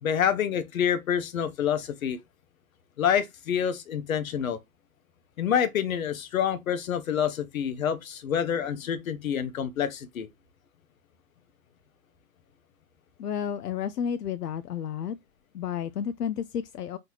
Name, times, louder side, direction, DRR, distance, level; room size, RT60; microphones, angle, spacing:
voice 1, 0.0-2.2 3.0-4.6 5.4-10.3, left 8 dB, 60° left, 1.0 m, -27 dB
voice 2, 13.2-15.2 15.5-17.0, left 8 dB, 80° left, 0.6 m, -31 dB
4.1 x 3.2 x 3.1 m
hypercardioid pair, 130°, 47 cm